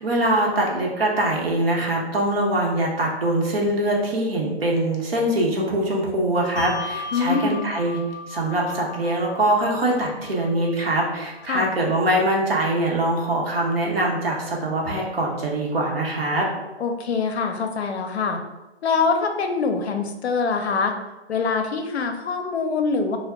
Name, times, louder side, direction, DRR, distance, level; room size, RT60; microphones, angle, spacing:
voice 1, 0.0-8.0 8.3-16.5, right 1 dB, 60° right, -1 dB, 0.8 m, -23 dB
Bell, 6.6-13.4, left 4 dB, 15° left, 0.6 m, -38 dB
voice 2, 7.1-7.6 11.5-11.7 16.8-18.4 18.8-20.9 21.3-23.2, left 4 dB, 75° left, 5 dB, 0.5 m, -24 dB
2.2 x 2.0 x 3.5 m, 1.1 s
hypercardioid pair, 160°, 32 cm